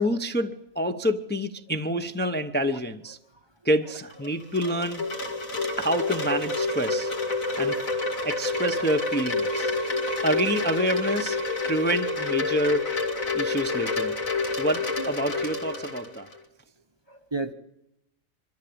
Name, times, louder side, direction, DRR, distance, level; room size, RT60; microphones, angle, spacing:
voice 1, 0.0-3.2 3.6-5.0 5.8-7.1 7.6-7.8 8.2-9.7 10.2-11.4 11.6-12.9 13.3-14.1 14.6-16.3, equal, 10° left, 7 dB, 0.7 m, -27 dB
Wind chime, 4.1-16.4, left 3 dB, 80° left, 2.8 m, -28 dB
voice 2, 17.1-17.5, right 3 dB, 20° right, 8 dB, 0.9 m, -34 dB
23.5 x 13.5 x 8.7 m, 0.86 s
omnidirectional pair, 1.4 m